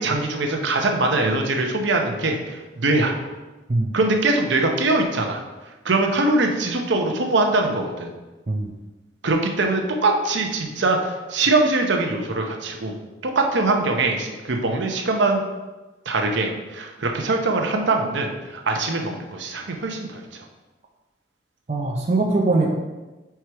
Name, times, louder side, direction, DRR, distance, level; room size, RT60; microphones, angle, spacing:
voice 1, 0.0-3.1 3.9-5.4 5.8-8.1 9.2-12.9 13.2-15.4 16.1-20.2, right 2 dB, 65° right, 3 dB, 0.7 m, -22 dB
voice 2, 21.7-22.7, right 2 dB, 35° right, -1 dB, 0.5 m, -21 dB
4.8 x 4.5 x 4.5 m, 1.2 s
head